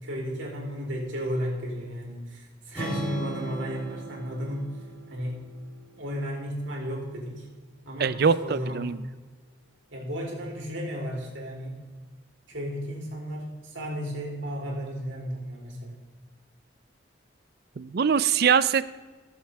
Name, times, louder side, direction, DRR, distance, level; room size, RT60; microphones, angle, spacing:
voice 1, 0.0-4.8 5.1-5.4 6.0-7.5 7.8-8.2 8.4-8.9 9.9-11.8 12.5-16.0, equal, 75° right, -3 dB, 3.5 m, -34 dB
Strum, 2.7-6.9, right 2 dB, 10° left, 3.1 m, -39 dB
voice 2, 8.0-9.0 17.8-18.8, right 6 dB, 50° right, 16 dB, 0.4 m, -23 dB
18.0 x 7.4 x 3.5 m, 1.3 s
head